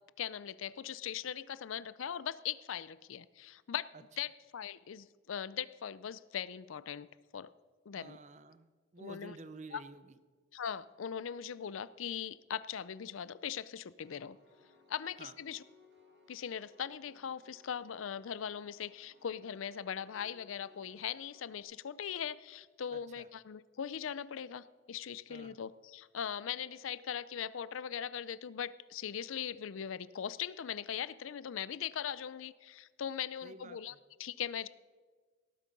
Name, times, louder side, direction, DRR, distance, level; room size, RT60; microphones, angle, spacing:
voice 1, 0.2-3.9 4.2-7.5 7.9-8.2 9.0-9.4 9.7-9.8 10.5-14.4 14.9-15.6 16.3-33.9 34.2-34.7, left 8 dB, 90° left, 18 dB, 0.5 m, -40 dB
voice 2, 8.0-10.2 15.2-15.3 22.9-23.3 25.3-25.6 33.4-34.0, right 3 dB, 35° right, 13 dB, 0.6 m, -51 dB
Piano, 14.0-21.6, left 3 dB, 55° right, 2.6 m, -65 dB
18.0 x 8.3 x 5.3 m, 1.4 s
head